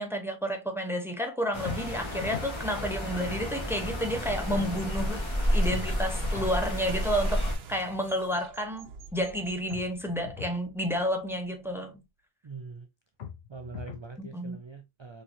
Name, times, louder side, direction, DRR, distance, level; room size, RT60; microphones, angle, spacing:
voice 1, 0.0-5.2 5.5-11.9 14.2-14.6, equal, 5° right, 0.6 m, -31 dB
sound 1, 1.5-7.6, equal, 30° left, 1.4 m, -31 dB
sound 2, 1.6-2.6 5.7-6.6 9.7-10.6 13.2-14.1, left 7 dB, 85° left, 1.0 m, -40 dB
voice 2, 4.5-5.0 12.4-12.9 13.5-15.2, right 4 dB, 45° right, 0.4 m, -43 dB
sound 3, 6.9-11.8, right 6 dB, 80° right, 0.9 m, -47 dB
4.3 x 3.0 x 2.6 m
omnidirectional pair, 1.0 m